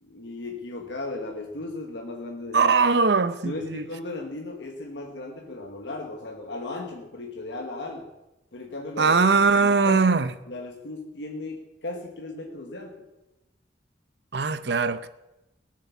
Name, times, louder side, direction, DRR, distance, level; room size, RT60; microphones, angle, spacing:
voice 1, 0.0-2.7 3.4-8.1 8.5-9.1 9.5-10.0 10.5-13.1, left 2 dB, 85° left, 1.3 m, -36 dB
voice 2, 2.5-3.9 9.0-10.3 14.3-15.1, right 4 dB, 70° right, 0.7 m, -21 dB
18.0 x 7.7 x 7.1 m
head